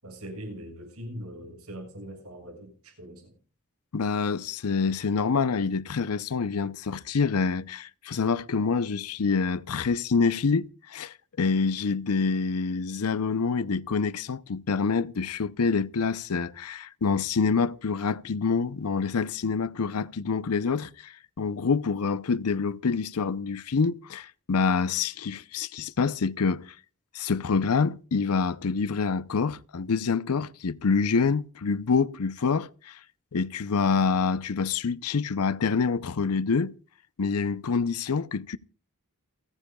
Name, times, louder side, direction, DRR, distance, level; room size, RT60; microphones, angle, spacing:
voice 1, 0.0-3.3, equal, 75° right, 6.6 m, -41 dB
voice 2, 3.9-26.7 27.1-33.0 33.3-36.7 37.2-38.6, left 5 dB, 80° left, 0.6 m, -26 dB
29.0 x 10.0 x 2.3 m
head